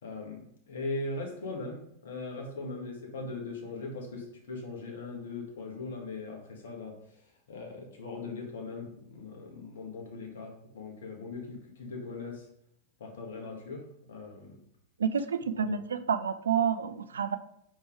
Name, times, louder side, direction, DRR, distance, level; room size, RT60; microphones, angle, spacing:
voice 1, 0.0-7.2 7.5-12.5 13.0-14.6 15.5-15.8, left 3 dB, 60° left, 0 dB, 1.7 m, -40 dB
voice 2, 15.0-17.4, right 7 dB, 70° right, 11 dB, 0.4 m, -29 dB
5.2 x 4.3 x 4.7 m, 0.72 s
figure-of-eight pair, 90°, 0 cm